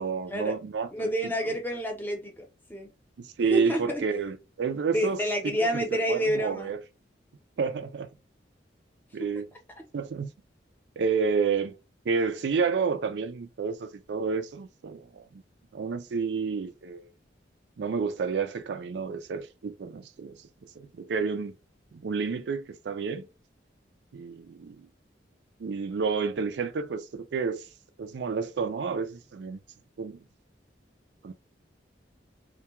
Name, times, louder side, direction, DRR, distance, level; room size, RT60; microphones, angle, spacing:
voice 1, 0.0-1.5 3.2-6.8 7.6-8.1 9.1-9.5 9.9-10.3 11.0-11.7 12.1-15.4 15.7-17.1 17.8-20.4 20.8-21.5 21.9-23.3 24.1-24.9 25.6-27.7 28.0-29.6 30.0-30.2 31.2-31.3, right 5 dB, 70° right, 0.4 m, -30 dB
voice 2, 0.9-2.9 3.5-4.0 4.9-6.8 9.2-9.3, equal, 10° left, 0.7 m, -29 dB
2.2 x 2.2 x 2.9 m
head